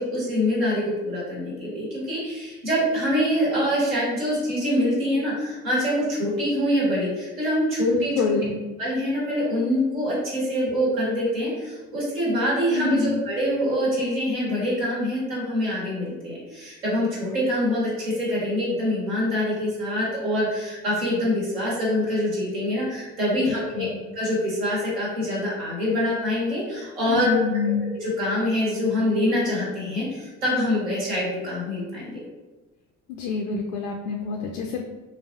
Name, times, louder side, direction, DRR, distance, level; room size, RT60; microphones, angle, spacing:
voice 1, 0.0-8.2 8.8-23.9 24.2-27.4 27.9-32.2, left 1 dB, 75° right, -7 dB, 1.4 m, -25 dB
voice 2, 7.9-8.6 12.7-13.2 23.4-24.0 27.1-27.8 33.1-34.8, left 5 dB, 60° left, 2 dB, 0.5 m, -27 dB
3.9 x 2.2 x 2.8 m, 1.2 s
figure-of-eight pair, 50°, 41 cm